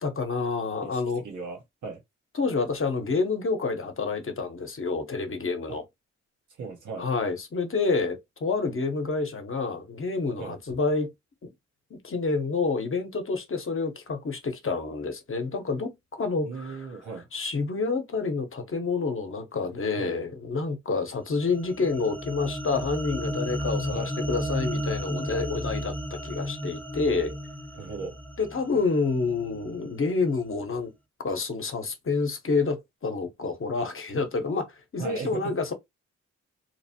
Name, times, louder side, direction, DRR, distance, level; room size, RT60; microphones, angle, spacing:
voice 1, 0.0-1.2 2.3-5.8 7.0-11.1 12.0-16.8 17.3-27.3 28.4-30.9 31.2-34.7 34.9-35.7, left 4 dB, 45° left, 0.8 m, -28 dB
voice 2, 0.8-2.0 5.7-5.8 6.6-7.1 10.4-10.6 16.4-17.3 20.0-20.2 23.9-24.1 27.7-28.2 35.0-35.6, right 4 dB, 85° right, 1.0 m, -37 dB
sound 1, 21.4-29.8, equal, 5° left, 0.4 m, -33 dB
2.9 x 2.0 x 2.8 m
cardioid pair, 60°, 30 cm